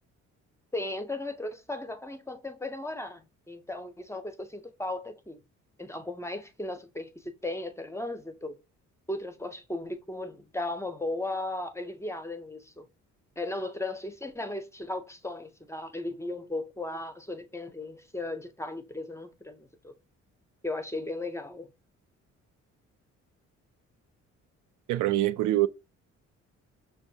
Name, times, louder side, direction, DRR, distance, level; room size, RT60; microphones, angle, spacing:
voice 1, 0.7-5.4 5.8-8.6 9.1-12.9 13.4-19.9 20.6-21.7, left 2 dB, 10° left, 0.5 m, -36 dB
voice 2, 24.9-25.7, right 14 dB, 80° right, 0.4 m, -24 dB
5.9 x 2.2 x 2.7 m
cardioid pair, 90°, 30 cm